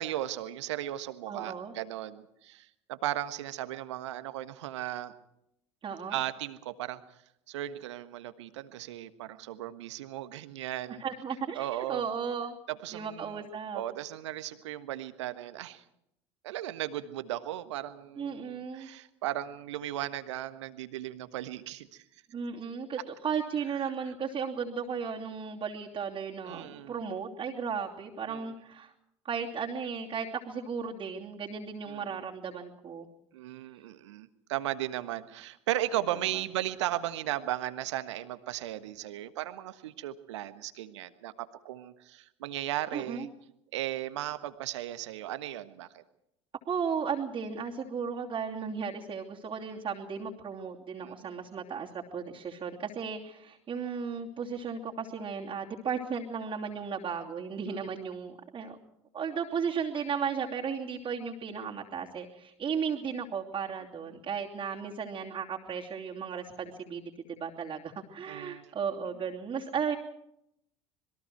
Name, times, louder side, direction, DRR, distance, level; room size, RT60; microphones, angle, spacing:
voice 1, 0.0-5.1 6.1-7.0 7.5-11.0 11.5-12.0 12.7-13.4 13.7-15.8 16.4-22.0 26.4-27.0 28.3-28.5 31.9-32.2 33.3-43.3 43.7-46.0 51.0-51.4 57.7-57.8 68.3-68.7, right 13 dB, 70° right, 11 dB, 1.4 m, -36 dB
voice 2, 1.3-1.7 5.8-6.2 11.0-12.6 12.9-13.8 18.2-18.9 22.3-28.9 29.2-33.1 36.3-36.4 42.9-43.3 46.7-58.8 59.1-70.0, right 6 dB, 35° right, -4 dB, 3.0 m, -35 dB
26.5 x 22.0 x 4.7 m, 0.78 s
figure-of-eight pair, 70°, 15 cm